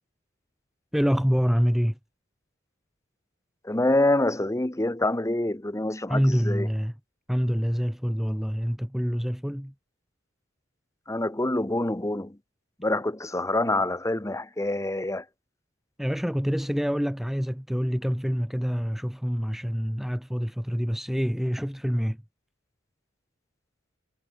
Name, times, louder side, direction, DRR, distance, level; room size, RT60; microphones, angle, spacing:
voice 1, 0.9-2.0 6.1-6.9 7.3-9.7 16.0-22.2, equal, ahead, 0.5 m, -26 dB
voice 2, 3.6-6.7 11.1-12.4 12.8-15.2, left 1 dB, 15° left, 1.1 m, -26 dB
head